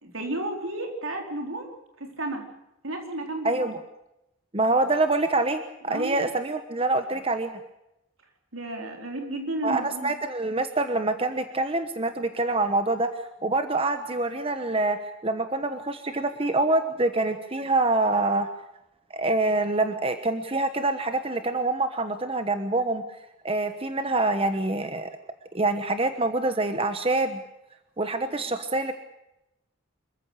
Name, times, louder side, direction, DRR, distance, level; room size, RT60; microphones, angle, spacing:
voice 1, 0.0-1.7 2.0-2.5 2.8-3.7 5.9-6.3 8.5-10.1, right 1 dB, 85° right, 3 dB, 4.2 m, -32 dB
voice 2, 3.4-3.8 4.5-7.6 9.6-18.5 19.1-23.0 23.4-25.1 25.5-27.4 28.0-28.9, right 2 dB, 30° right, 8 dB, 1.1 m, -26 dB
26.5 x 14.5 x 8.2 m, 0.89 s
head